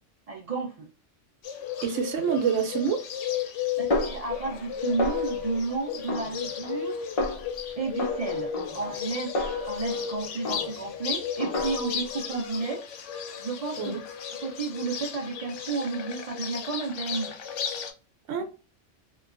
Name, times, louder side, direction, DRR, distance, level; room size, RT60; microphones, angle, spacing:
voice 1, 0.3-0.9 3.8-7.1 7.8-12.8 13.4-14.0 14.4-17.3 18.4-18.5, right 4 dB, 55° right, 0.4 m, -32 dB
Bird, 1.4-17.9, left 8 dB, 75° left, 0.9 m, -34 dB
voice 2, 1.8-3.0 13.8-14.0 18.3-18.4, right 6 dB, 80° right, 0.9 m, -26 dB
Snare drum, 3.9-4.7 5.0-5.6 6.1-6.9 7.2-7.6 8.0-10.1 10.4-11.0 11.4-12.1, left 2 dB, 45° left, 0.5 m, -32 dB
2.9 x 2.2 x 2.4 m
omnidirectional pair, 1.3 m